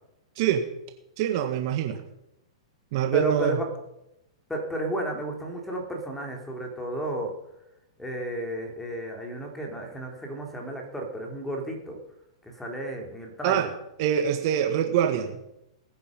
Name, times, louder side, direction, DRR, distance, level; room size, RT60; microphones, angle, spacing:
voice 1, 1.2-2.0 2.9-3.6 13.4-13.7 14.0-15.3, right 9 dB, 50° right, 7 dB, 1.8 m, -24 dB
voice 2, 3.1-3.7 4.5-7.3 8.0-12.0 12.4-13.7, right 1 dB, 5° left, 2 dB, 3.9 m, -32 dB
20.0 x 10.0 x 5.4 m, 0.86 s
figure-of-eight pair, 110°, 3 cm